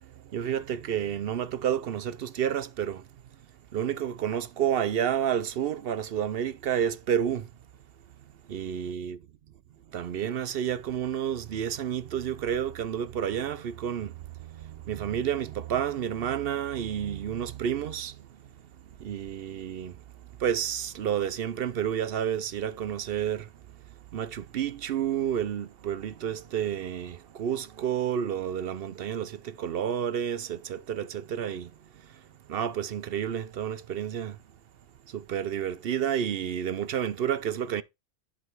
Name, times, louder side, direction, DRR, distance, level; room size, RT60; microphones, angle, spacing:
voice 1, 0.0-3.1 3.7-7.5 8.4-9.2 9.9-18.4 19.0-23.8 24.1-34.4 35.1-37.8, right 9 dB, 60° right, 0.7 m, -30 dB
11.0 x 3.7 x 4.5 m
omnidirectional pair, 1.3 m